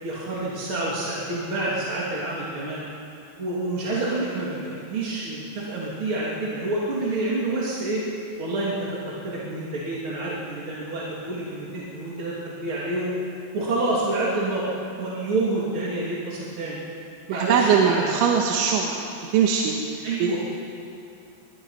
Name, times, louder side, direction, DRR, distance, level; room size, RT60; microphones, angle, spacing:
voice 1, 0.0-2.8 3.4-4.6 4.9-8.0 8.4-13.1 13.5-16.8 17.3-18.1 20.0-20.4, right 2 dB, 35° right, -6 dB, 2.5 m, -28 dB
voice 2, 17.3-19.0 19.3-20.4, right 6 dB, 75° right, 0 dB, 3.5 m, -21 dB
23.0 x 22.0 x 5.8 m, 2.8 s
omnidirectional pair, 5.9 m